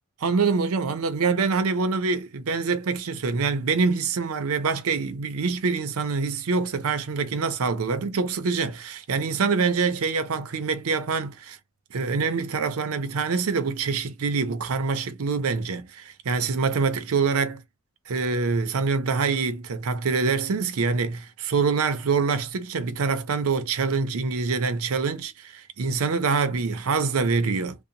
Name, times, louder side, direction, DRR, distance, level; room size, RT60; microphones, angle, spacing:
voice 1, 0.2-11.6 11.9-17.6 18.1-27.8, right 4 dB, 70° right, 0.5 m, -25 dB
2.7 x 2.0 x 2.5 m
head